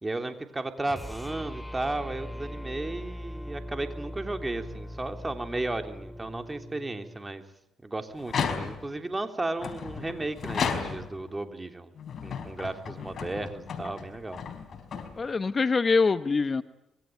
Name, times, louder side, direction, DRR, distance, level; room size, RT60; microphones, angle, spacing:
voice 1, 0.0-7.4 7.8-11.9 12.2-14.4, right 2 dB, 20° right, 6 dB, 3.3 m, -34 dB
sound 1, 0.8-7.2, equal, 10° left, 2.5 m, -40 dB
sound 2, 8.2-9.0 9.6-11.3 12.0-15.5, left 6 dB, 55° left, 4.6 m, -34 dB
voice 2, 15.2-16.6, left 4 dB, 35° left, 12 dB, 1.0 m, -24 dB
26.0 x 22.5 x 9.3 m, 0.87 s
cardioid pair, 90°, 0 cm